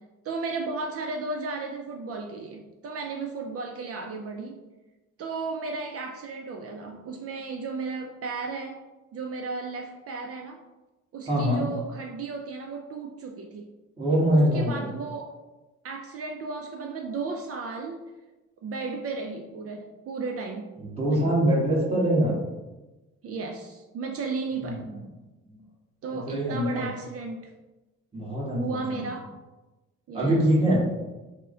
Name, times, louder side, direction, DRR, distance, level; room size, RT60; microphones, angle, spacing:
voice 1, 0.2-4.7 5.2-8.8 9.1-10.6 11.1-13.7 14.3-15.3 15.8-18.0 18.6-20.7 21.1-21.3 23.2-24.9 26.0-27.5 28.6-29.3 30.1-30.5, right 4 dB, 50° right, 3 dB, 0.4 m, -34 dB
voice 2, 11.3-11.6 14.0-14.9 20.8-22.4 24.6-24.9 25.4-25.5 26.1-26.9 28.1-29.0 30.1-30.8, equal, 20° right, -6 dB, 1.4 m, -24 dB
3.5 x 2.1 x 3.7 m, 1.1 s
cardioid pair, 90°, 30 cm